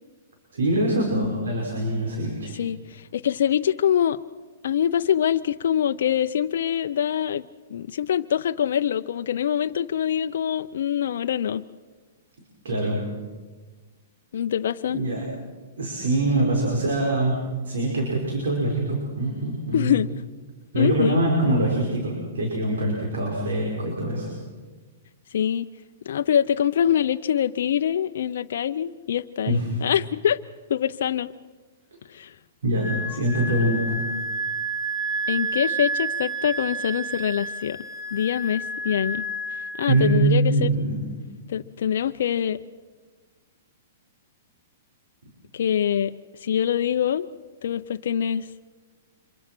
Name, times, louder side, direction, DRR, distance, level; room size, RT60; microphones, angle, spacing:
voice 1, 0.5-2.5 12.6-13.0 14.9-15.2 15.8-17.4 17.6-19.9 20.7-24.3 29.4-29.7 32.6-34.0 39.9-41.0, right 1 dB, 85° right, -1 dB, 5.5 m, -24 dB
voice 2, 2.5-4.2 4.6-7.4 7.7-11.6 14.3-15.0 19.7-20.1 20.8-21.2 25.3-25.6 26.1-30.4 30.7-31.3 32.1-32.3 35.3-37.8 38.1-39.2 39.8-40.7 41.5-42.6 45.5-46.1 46.4-47.3 47.6-48.5, left 9 dB, 70° left, 8 dB, 0.6 m, -24 dB
Wind instrument woodwind instrument, 32.8-40.2, right 2 dB, 5° right, 2.2 m, -30 dB
26.0 x 23.5 x 6.1 m, 1.4 s
hypercardioid pair, 135°, 0 cm